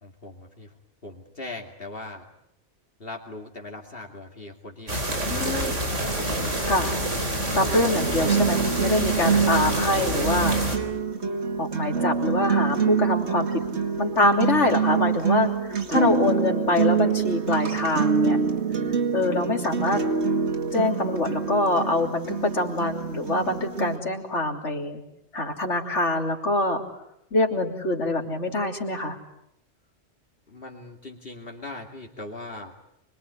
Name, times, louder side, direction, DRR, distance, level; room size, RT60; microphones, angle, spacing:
voice 1, 0.0-0.7 1.0-2.3 3.0-5.6 7.7-7.9 9.3-9.7 14.5-14.7 30.5-32.7, left 2 dB, 50° left, 2 dB, 2.7 m, -40 dB
sound 1, 4.9-10.8, right 1 dB, 90° right, 4.3 m, -27 dB
voice 2, 5.3-5.7 6.6-6.9 7.5-10.6 11.6-13.5 14.0-18.4 19.1-20.0 20.7-25.0 25.3-26.8 27.3-29.2, left 2 dB, 75° left, 2 dB, 3.6 m, -25 dB
sound 2, 8.0-24.0, right 6 dB, 65° right, 2.4 m, -26 dB
25.5 x 23.5 x 9.8 m, 0.78 s
omnidirectional pair, 1.2 m